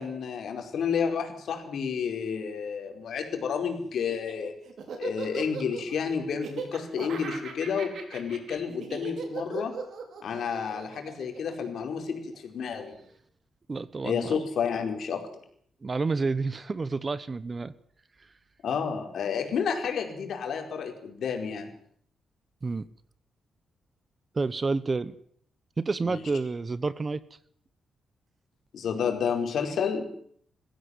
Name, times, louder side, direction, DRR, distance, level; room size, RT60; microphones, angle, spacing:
voice 1, 0.0-4.5 5.0-9.7 10.2-12.9 14.0-15.3 18.6-21.7 26.0-26.2 28.7-30.1, left 6 dB, 65° left, 4 dB, 4.9 m, -30 dB
Laughter, 4.0-12.4, right 5 dB, 60° right, 5.0 m, -38 dB
voice 2, 13.7-14.4 15.8-17.7 22.6-22.8 24.3-25.1 25.8-27.2, right 3 dB, 25° right, 17 dB, 0.9 m, -29 dB
21.5 x 15.5 x 9.8 m, 0.62 s
wide cardioid pair, 170°, 0 cm